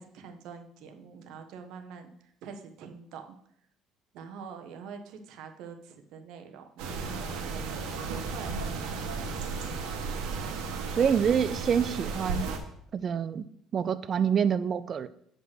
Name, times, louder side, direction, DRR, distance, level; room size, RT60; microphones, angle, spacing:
voice 1, 0.0-3.4 4.1-9.2 11.0-11.1, right 6 dB, 65° right, 5 dB, 1.3 m, -45 dB
sound 1, 6.8-12.6, right 4 dB, 90° right, 1.7 m, -34 dB
voice 2, 10.9-12.5 12.9-13.4 13.7-15.1, right 7 dB, 35° right, 13 dB, 0.4 m, -26 dB
7.9 x 5.2 x 6.2 m, 0.69 s
cardioid pair, 145°, 0 cm